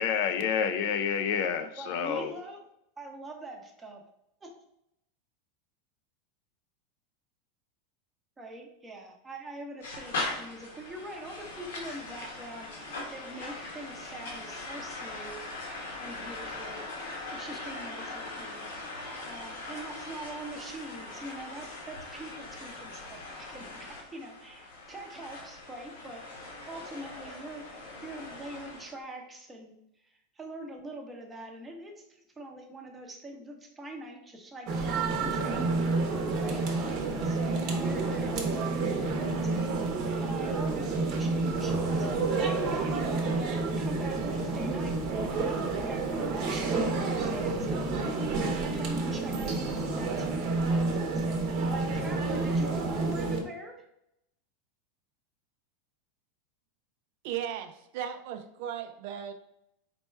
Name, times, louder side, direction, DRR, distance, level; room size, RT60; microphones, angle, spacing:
voice 1, 0.0-2.3, left 7 dB, 60° left, 0.4 m, -28 dB
voice 2, 1.8-2.6 3.0-4.0 4.4-4.5 8.4-16.8 17.3-18.7 19.2-29.7 30.0-35.8 36.4-36.6 37.2-39.7 40.2-45.0 45.4-53.9, right 1 dB, 15° right, 0.8 m, -44 dB
sound 1, 9.8-28.9, left 2 dB, 90° left, 1.3 m, -41 dB
sound 2, 34.7-53.4, right 3 dB, 45° right, 0.9 m, -29 dB
voice 3, 57.2-59.3, right 9 dB, 60° right, 0.4 m, -36 dB
4.2 x 2.2 x 4.4 m
supercardioid pair, 140°, 0 cm